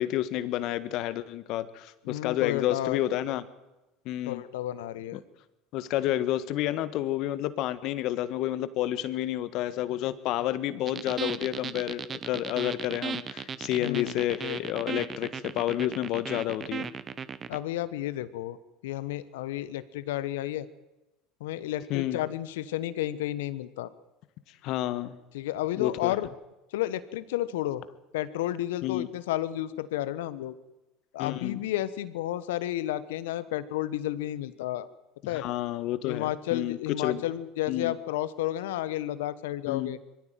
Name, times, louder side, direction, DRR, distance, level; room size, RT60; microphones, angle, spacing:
voice 1, 0.0-3.4 4.0-4.4 5.1-5.2 5.7-16.9 21.9-22.2 24.6-25.2 25.8-26.2 28.8-29.1 31.2-31.6 35.2-36.8 37.0-37.2 37.7-37.9 39.7-39.9, left 13 dB, 60° left, 15 dB, 1.5 m, -30 dB
voice 2, 2.0-3.0 4.3-5.2 13.8-14.2 17.5-18.6 18.8-20.7 21.4-23.9 25.3-26.3 26.7-27.8 28.1-30.5 31.1-34.9 35.3-35.4 36.0-40.0, left 13 dB, 80° left, 16 dB, 1.2 m, -32 dB
sound 1, 10.9-17.6, right 6 dB, 35° right, 1.2 m, -36 dB
22.5 x 15.5 x 9.2 m, 1.0 s
hypercardioid pair, 80°, 0 cm